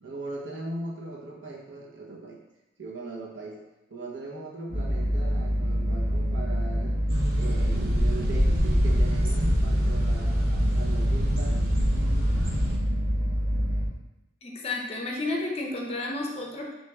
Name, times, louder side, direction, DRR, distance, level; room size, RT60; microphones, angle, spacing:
voice 1, 0.0-2.4 2.8-3.6 3.9-7.0 7.3-11.7, right 2 dB, 80° right, -1 dB, 0.8 m, -39 dB
sound 1, 4.7-13.9, equal, 30° right, 1.0 m, -26 dB
sound 2, 7.1-12.8, equal, 50° right, 0.7 m, -26 dB
voice 2, 14.4-16.8, left 2 dB, 30° left, 0 dB, 0.5 m, -31 dB
5.7 x 2.9 x 2.3 m, 0.96 s
head